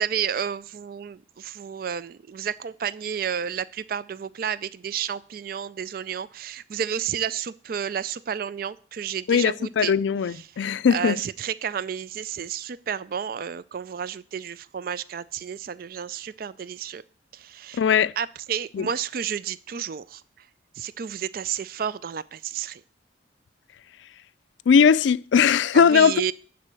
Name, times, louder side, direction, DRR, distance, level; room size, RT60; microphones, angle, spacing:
voice 1, 0.0-10.0 10.3-17.0 17.3-17.8 18.2-20.5 20.7-22.8 25.7-26.3, right 8 dB, 50° right, 0.4 m, -31 dB
voice 2, 9.3-11.2 17.8-18.1 18.7-18.9 24.7-26.3, left 6 dB, 85° left, 0.3 m, -19 dB
11.0 x 4.1 x 7.6 m
head